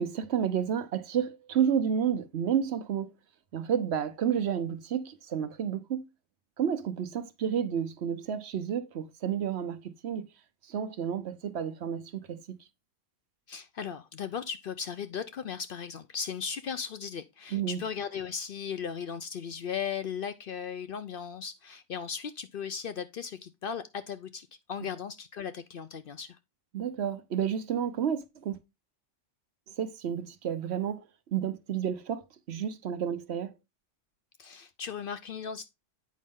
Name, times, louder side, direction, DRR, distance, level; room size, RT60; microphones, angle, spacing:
voice 1, 0.0-3.1 3.5-6.1 6.6-10.3 10.7-12.4 17.5-17.8 26.7-28.6 29.8-31.0 31.3-33.5, right 8 dB, 65° right, 1.0 m, -30 dB
voice 2, 13.5-26.4 34.4-35.7, left 7 dB, 60° left, 0.7 m, -37 dB
8.5 x 5.2 x 3.6 m
omnidirectional pair, 1.3 m